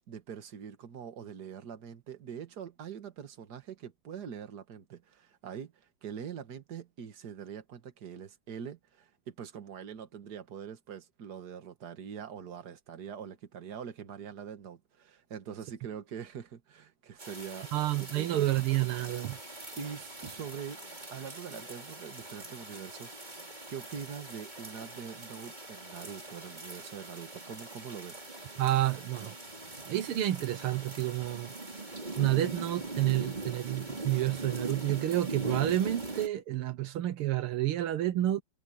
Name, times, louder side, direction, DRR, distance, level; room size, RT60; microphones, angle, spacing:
voice 1, 0.0-17.7 18.1-18.5 19.8-20.8 21.1-28.2, right 7 dB, 50° right, 2.0 m, -43 dB
sound 1, 17.2-36.3, right 2 dB, 20° right, 3.6 m, -42 dB
voice 2, 17.7-19.4 28.6-29.4 29.8-31.5 32.2-38.4, right 14 dB, 80° right, 1.9 m, -29 dB
omnidirectional pair, 2.4 m